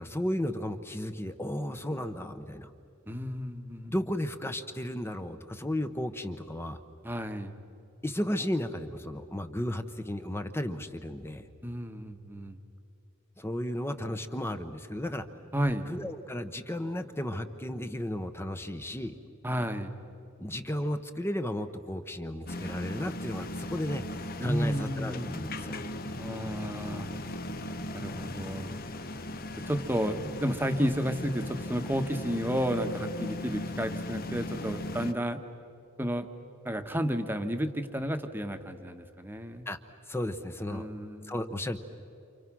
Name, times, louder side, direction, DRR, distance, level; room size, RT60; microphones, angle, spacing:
voice 1, 0.0-2.7 3.8-6.8 8.0-11.4 13.4-15.2 15.9-19.1 20.4-24.0 24.4-25.8 39.7-39.8 40.1-40.9 41.2-41.8, left 1 dB, 10° left, 8 dB, 1.0 m, -34 dB
voice 2, 3.1-3.9 7.0-7.5 11.6-12.6 15.5-15.9 19.4-19.9 24.4-25.3 26.2-27.1 27.9-28.8 29.7-35.4 36.0-36.3 36.6-39.7 40.7-41.3, equal, 10° right, 7 dB, 1.3 m, -32 dB
sound 1, 22.5-35.1, left 1 dB, 40° left, 1.0 m, -38 dB
29.5 x 28.5 x 6.2 m, 2.7 s
head